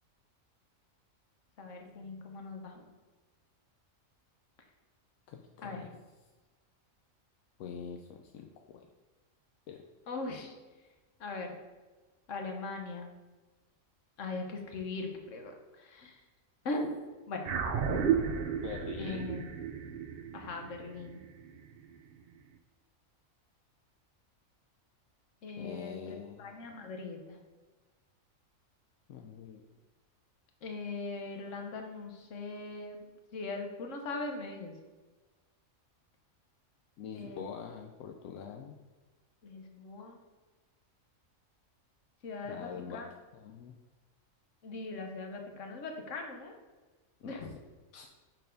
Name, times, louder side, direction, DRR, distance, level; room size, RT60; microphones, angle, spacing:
voice 1, 1.6-2.9 5.6-5.8 10.1-10.5 11.2-11.6 12.3-13.1 14.2-16.2 16.6-17.0 17.3-17.6 19.0-19.5 20.3-21.2 25.4-27.4 30.6-33.0 33.3-34.7 37.1-37.5 39.4-40.2 42.2-43.1 44.6-46.5 47.2-47.5, left 3 dB, 65° left, 3 dB, 1.3 m, -40 dB
voice 2, 5.3-5.9 7.6-8.9 9.7-9.8 18.6-19.3 25.6-26.7 29.1-29.7 37.0-38.7 42.4-43.0 43.3-43.7 47.2-47.4 47.9-48.1, left 7 dB, 80° left, 3 dB, 1.0 m, -44 dB
sound 1, 17.4-22.1, right 7 dB, 55° right, 0.8 m, -33 dB
6.7 x 4.2 x 5.1 m, 1.3 s
omnidirectional pair, 1.4 m